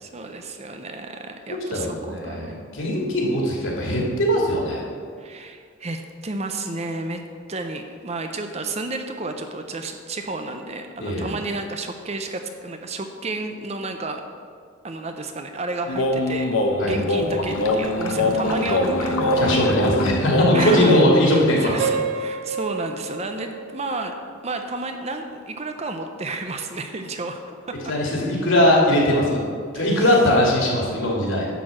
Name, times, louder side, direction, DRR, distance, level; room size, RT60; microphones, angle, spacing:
voice 1, 0.0-2.6 5.2-7.2 7.5-14.2 14.8-19.8 20.5-24.1 24.4-27.8 29.7-30.1, right 2 dB, 30° right, 6 dB, 0.6 m, -32 dB
voice 2, 1.5-2.5 2.7-4.8 11.0-11.3 16.8-17.0 19.4-22.0 27.9-29.4 29.7-31.5, left 1 dB, 70° left, -2 dB, 2.5 m, -20 dB
sound 1, 15.9-21.1, left 1 dB, 85° left, 1.0 m, -22 dB
Piano, 21.8-24.8, right 5 dB, 70° right, 0.5 m, -30 dB
11.0 x 4.5 x 7.5 m, 2.1 s
head